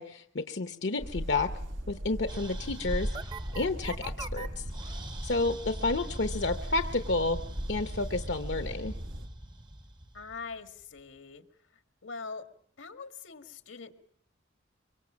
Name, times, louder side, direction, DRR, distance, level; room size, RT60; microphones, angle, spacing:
voice 1, 0.0-1.5 1.9-3.1 3.5-4.6 5.2-7.4 7.7-8.9, left 3 dB, 60° left, 7 dB, 0.9 m, -30 dB
sound 1, 1.0-9.3, equal, 85° right, 2.1 m, -38 dB
sound 2, 2.3-10.8, right 1 dB, 20° right, 0.9 m, -41 dB
voice 2, 10.1-11.4 11.7-12.5 12.8-13.9, left 4 dB, 85° left, 7 dB, 1.9 m, -43 dB
24.0 x 24.0 x 6.3 m, 0.65 s
head